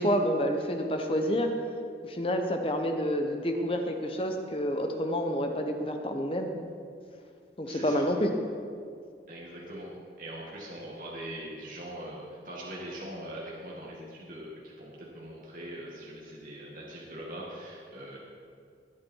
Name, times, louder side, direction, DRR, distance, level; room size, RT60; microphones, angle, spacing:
voice 1, 0.0-1.5 2.0-6.5 7.6-8.3, equal, 30° left, 4 dB, 1.1 m, -28 dB
voice 2, 7.6-8.0 9.3-18.2, right 1 dB, 50° right, -4 dB, 2.3 m, -42 dB
19.5 x 8.6 x 4.7 m, 2.2 s
head